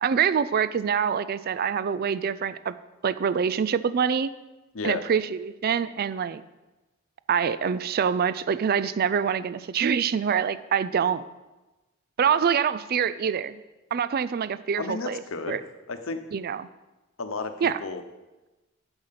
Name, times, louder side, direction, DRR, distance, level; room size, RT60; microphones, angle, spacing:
voice 1, 0.0-2.7 3.0-4.3 4.8-6.4 7.3-11.2 12.2-13.6 13.9-15.2 15.5-15.6 16.3-16.7 17.6-17.8, right 7 dB, 45° right, 15 dB, 0.4 m, -25 dB
voice 2, 14.7-15.6 15.9-16.2 17.2-18.0, left 4 dB, 70° left, 8 dB, 0.9 m, -32 dB
8.8 x 7.9 x 5.8 m, 1.1 s
head